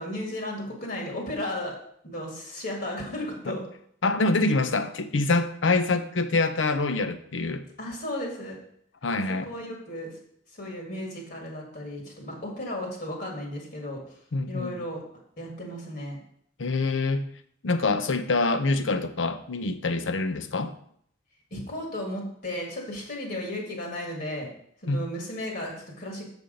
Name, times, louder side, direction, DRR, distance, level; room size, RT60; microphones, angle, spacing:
voice 1, 0.0-1.8 2.0-3.6 7.8-8.6 9.4-10.1 10.5-14.0 14.5-15.0 15.4-16.2 21.5-24.5 24.8-26.3, left 1 dB, 55° left, 0 dB, 1.9 m, -34 dB
voice 2, 4.0-7.6 9.0-9.5 14.3-14.7 16.6-17.3 17.6-20.7 24.9-25.0, left 3 dB, 80° left, 10 dB, 0.7 m, -25 dB
6.9 x 6.1 x 5.1 m, 0.66 s
head